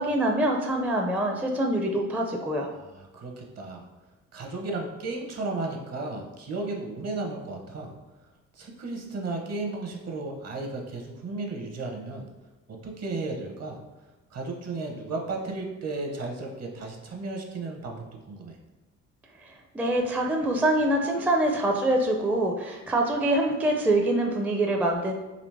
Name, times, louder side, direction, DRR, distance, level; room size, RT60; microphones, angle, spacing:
voice 1, 0.0-2.7 19.4-25.1, right 1 dB, 5° right, 1 dB, 0.4 m, -25 dB
voice 2, 2.7-3.9 4.3-7.9 8.6-12.3 12.7-13.8 14.3-18.6, right 3 dB, 55° right, 1 dB, 0.9 m, -34 dB
4.1 x 2.8 x 3.3 m, 1.1 s
cardioid pair, 90°, 30 cm